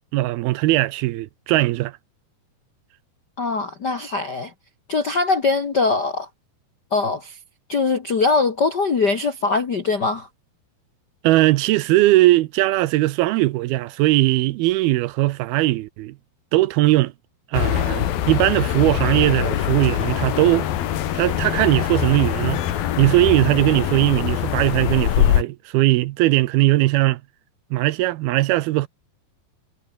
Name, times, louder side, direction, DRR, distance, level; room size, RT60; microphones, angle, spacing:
voice 1, 0.1-1.9 11.2-16.2 16.5-17.1 17.5-20.7 21.1-22.6 23.0-27.2 27.7-28.9, right 18 dB, 80° right, 2.5 m, -19 dB
voice 2, 3.4-4.5 4.9-6.3 6.9-7.4 7.7-10.3, left 4 dB, 85° left, 0.9 m, -22 dB
sound 1, 17.5-25.4, left 11 dB, 65° left, 3.3 m, -23 dB
omnidirectional pair, 4.7 m